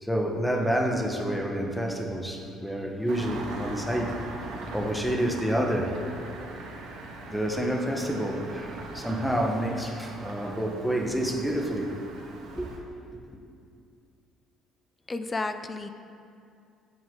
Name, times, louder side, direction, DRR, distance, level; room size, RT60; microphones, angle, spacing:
voice 1, 0.0-4.2 4.7-6.0 7.3-11.9 12.5-12.7, equal, ahead, 1 dB, 1.1 m, -28 dB
Engine starting, 3.1-12.8, right 3 dB, 70° right, 1.6 m, -41 dB
voice 2, 15.1-15.9, left 3 dB, 15° left, 9 dB, 0.4 m, -32 dB
15.0 x 8.0 x 3.7 m, 2.4 s
cardioid pair, 155°, 0 cm